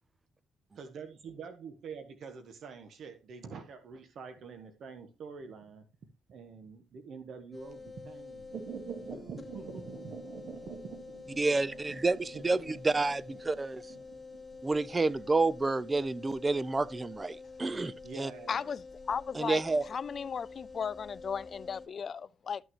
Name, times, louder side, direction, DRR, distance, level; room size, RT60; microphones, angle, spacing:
voice 1, 0.8-5.8 6.3-8.6 9.1-10.7 11.2-11.9 12.3-12.7 13.5-13.6 18.0-18.7, right 5 dB, 65° right, 1.4 m, -47 dB
sound 1, 7.5-21.9, left 4 dB, 25° left, 0.9 m, -48 dB
sound 2, 8.5-17.4 17.7-17.8, right 7 dB, 85° right, 2.5 m, -47 dB
voice 2, 11.4-13.8 14.6-18.3 19.4-19.8, right 3 dB, 25° right, 0.6 m, -29 dB
voice 3, 18.5-22.6, left 6 dB, 50° left, 0.4 m, -36 dB
13.0 x 6.4 x 3.1 m
cardioid pair, 90°, 0 cm